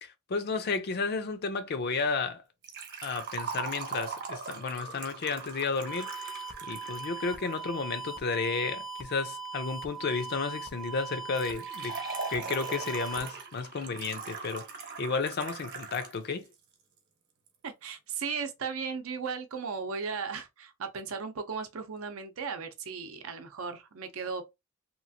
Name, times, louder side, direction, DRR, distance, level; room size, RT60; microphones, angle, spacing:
voice 1, 0.0-2.4 3.0-6.4 6.7-12.0 12.3-14.6 15.0-16.5, left 4 dB, 50° left, 0.5 m, -32 dB
Liquid, 2.6-7.6 11.4-16.2 16.5-16.6 17.5-17.6, right 5 dB, 55° right, 0.8 m, -40 dB
sound 1, 5.9-13.3, right 4 dB, ahead, 0.5 m, -40 dB
voice 2, 17.6-24.4, right 5 dB, 80° right, 0.6 m, -36 dB
3.0 x 2.4 x 2.6 m
head